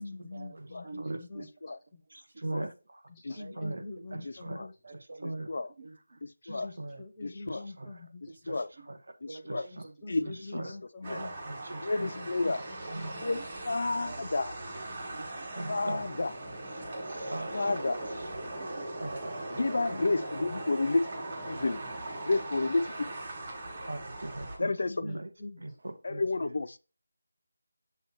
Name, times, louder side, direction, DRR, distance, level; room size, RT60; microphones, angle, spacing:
voice 1, 0.0-1.5 1.9-2.0 3.1-4.8 6.5-8.2 9.7-11.3 12.1-12.6 12.9-13.2 15.5-15.9 17.5-17.8 19.9-20.2 24.9-25.8, left 3 dB, 10° left, 0.8 m, -45 dB
voice 2, 0.8-1.4 3.3-3.5 4.8-5.3 5.8-6.2 9.3-9.9 13.3-13.4 13.9-14.3 15.1-15.5 18.5-19.1, right 3 dB, 45° right, 0.9 m, -46 dB
voice 3, 2.1-3.0 3.6-3.8 4.1-4.6 5.2-5.5 6.4-7.0 7.5-7.9 8.5-9.0 9.5-9.8 10.2-10.7 11.1-12.1 12.4-12.5 12.9-13.2 15.5-16.1 17.1-17.7 19.0-19.6 23.8-24.7 25.0-25.3 25.6-26.2, right 2 dB, 70° right, 1.2 m, -40 dB
voice 4, 6.2-6.7 7.5-7.6 8.5-8.7 9.2-9.7 10.1-10.3 10.5-10.6 11.1-11.2 11.8-12.6 13.2-14.6 15.7-16.3 17.5-18.0 19.5-21.1 21.5-21.8 22.3-23.1 24.6-24.9 26.0-26.8, left 3 dB, 45° left, 0.4 m, -30 dB
sound 1, 11.0-24.6, right 2 dB, 25° right, 1.7 m, -39 dB
6.9 x 3.2 x 4.4 m
figure-of-eight pair, 180°, 0 cm